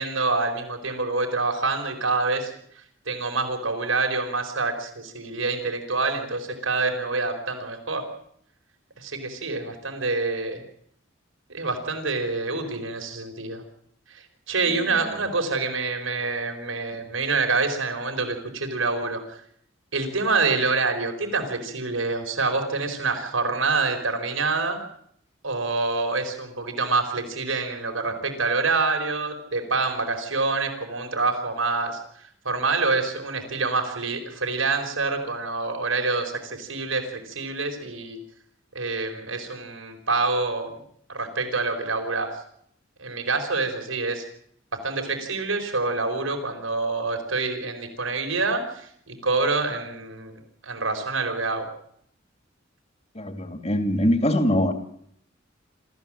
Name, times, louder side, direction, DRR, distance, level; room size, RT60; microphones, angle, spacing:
voice 1, 0.0-2.5 3.1-8.1 9.0-10.6 11.5-13.6 14.1-19.4 19.9-24.8 25.4-32.0 32.4-38.2 38.7-40.8 41.1-42.3 43.0-44.2 44.8-51.7, right 3 dB, 90° right, 5 dB, 4.6 m, -26 dB
voice 2, 53.1-54.7, left 1 dB, 35° left, 7 dB, 2.3 m, -22 dB
27.0 x 14.5 x 7.7 m, 0.67 s
head